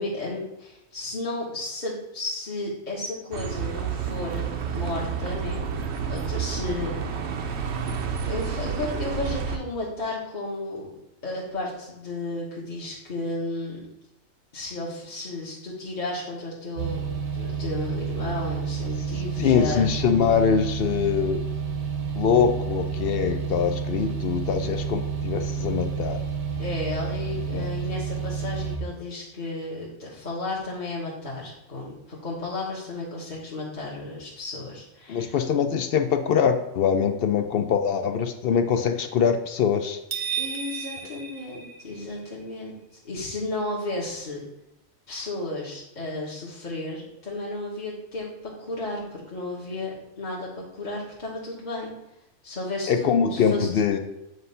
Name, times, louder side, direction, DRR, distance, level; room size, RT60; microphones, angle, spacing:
voice 1, 0.0-7.1 8.2-10.9 11.2-13.8 14.5-17.0 17.3-19.9 24.6-24.8 26.6-35.3 40.4-44.4 45.1-51.9 52.4-53.7, left 2 dB, 35° left, -6 dB, 1.2 m, -33 dB
Bus, 3.3-9.6, right 6 dB, 60° right, 0.9 m, -30 dB
sound 1, 16.8-28.8, right 6 dB, 80° right, 1.3 m, -30 dB
voice 2, 19.4-21.4 22.2-26.2 27.5-27.7 35.1-40.0 52.9-54.0, left 7 dB, 65° left, 7 dB, 0.6 m, -23 dB
sound 2, 40.1-42.3, right 7 dB, 15° right, 0.9 m, -33 dB
7.9 x 2.7 x 5.4 m, 0.89 s
omnidirectional pair, 1.4 m